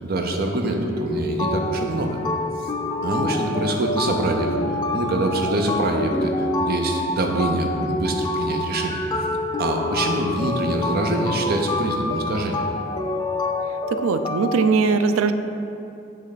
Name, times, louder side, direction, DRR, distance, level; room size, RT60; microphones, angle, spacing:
voice 1, 0.0-2.2 3.0-4.6 4.9-6.3 6.6-9.0 9.6-12.6, right 2 dB, 50° right, 3 dB, 0.6 m, -24 dB
sound 1, 1.0-14.7, left 2 dB, 20° left, 0.3 m, -27 dB
voice 2, 13.9-15.3, right 5 dB, 90° right, 9 dB, 0.4 m, -20 dB
9.4 x 3.2 x 4.0 m, 2.7 s
head